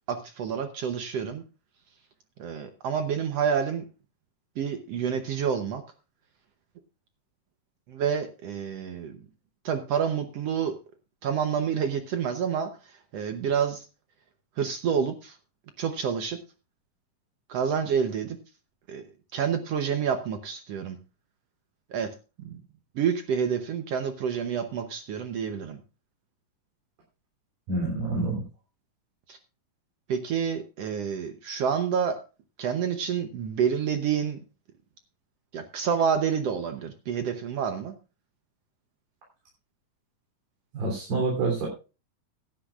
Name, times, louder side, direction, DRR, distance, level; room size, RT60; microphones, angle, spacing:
voice 1, 0.1-1.4 2.4-3.8 4.6-5.8 7.9-9.2 9.6-10.8 11.2-13.9 14.6-15.4 15.8-16.4 17.5-18.4 18.9-19.0 19.3-21.0 21.9-22.1 22.4-22.6 22.9-25.8 29.3-29.4 30.1-32.2 32.6-34.4 35.5-37.9, right 7 dB, 70° right, 7 dB, 1.5 m, -28 dB
voice 2, 27.7-28.4 40.7-41.7, right 3 dB, 85° right, -2 dB, 5.1 m, -27 dB
16.0 x 12.0 x 2.4 m, 0.32 s
omnidirectional pair, 3.9 m